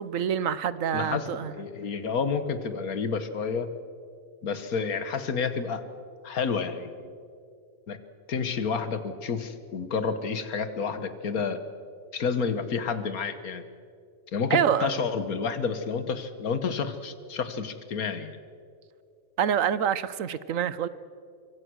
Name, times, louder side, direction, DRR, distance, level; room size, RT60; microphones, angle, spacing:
voice 1, 0.0-1.5 14.5-14.9 19.4-20.9, right 8 dB, 70° right, 16 dB, 1.2 m, -26 dB
voice 2, 0.9-1.3 1.5-3.7 4.4-5.8 6.2-7.1 7.9-8.0 8.3-11.6 12.1-13.6 14.3-18.4, left 5 dB, 85° left, 11 dB, 1.8 m, -30 dB
25.0 x 24.5 x 6.3 m, 2.4 s
omnidirectional pair, 1.5 m